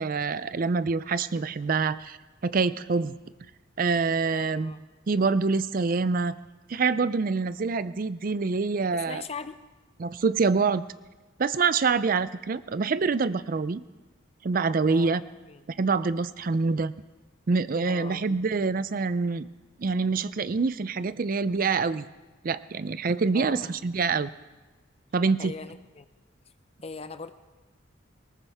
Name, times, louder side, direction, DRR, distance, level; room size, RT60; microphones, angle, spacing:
voice 1, 0.0-2.2 2.4-3.1 3.8-4.7 5.1-6.3 6.7-9.2 10.0-10.8 11.4-13.8 14.4-15.2 15.8-16.9 17.5-19.5 19.8-22.1 22.4-24.3 25.1-25.5, right 4 dB, 45° right, 15 dB, 0.4 m, -26 dB
voice 2, 4.3-4.8 8.9-9.6 14.9-15.7 17.9-18.3 23.3-23.8 25.4-26.1 26.8-27.3, left 4 dB, 30° left, 11 dB, 0.6 m, -40 dB
19.5 x 18.5 x 3.5 m, 1.2 s
head